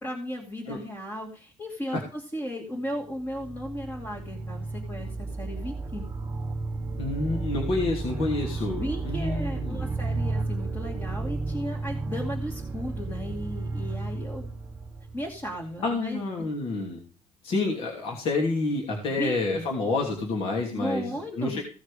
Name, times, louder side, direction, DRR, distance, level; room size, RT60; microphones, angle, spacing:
voice 1, 0.0-6.0 8.7-14.5 15.1-16.5 19.1-19.6 20.7-21.6, equal, 20° left, -1 dB, 2.5 m, -35 dB
sound 1, 3.0-15.9, right 3 dB, 20° right, 0.8 m, -33 dB
voice 2, 7.0-10.0 15.8-17.0 17.4-21.6, left 3 dB, 50° left, 0 dB, 2.9 m, -29 dB
16.5 x 6.3 x 5.0 m, 0.39 s
cardioid pair, 165°, 12 cm